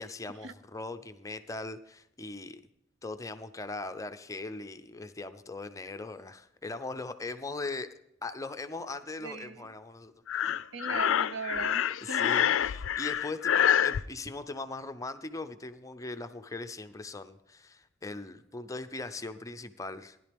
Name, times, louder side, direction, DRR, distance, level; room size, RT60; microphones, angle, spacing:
voice 1, 0.0-2.6 3.0-10.1 10.4-10.5 12.0-20.2, left 3 dB, 15° left, 9 dB, 0.5 m, -40 dB
voice 2, 9.2-9.7 10.7-12.3, right 4 dB, 65° right, 12 dB, 0.6 m, -39 dB
Breathing, 10.3-14.0, left 9 dB, 75° left, 0.4 m, -27 dB
16.0 x 11.0 x 3.4 m, 0.79 s
head